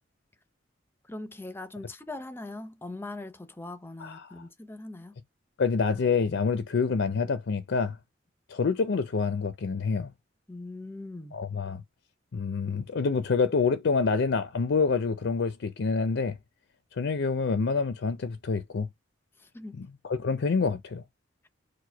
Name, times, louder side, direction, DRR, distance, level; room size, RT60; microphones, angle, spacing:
voice 1, 1.1-5.2 10.5-11.3 19.5-19.8, left 2 dB, 10° left, 0.6 m, -41 dB
voice 2, 4.0-4.4 5.6-8.0 8.5-10.1 11.3-11.8 12.3-16.4 16.9-18.9 19.8-21.0, left 5 dB, 65° left, 0.5 m, -27 dB
4.7 x 2.2 x 4.4 m
head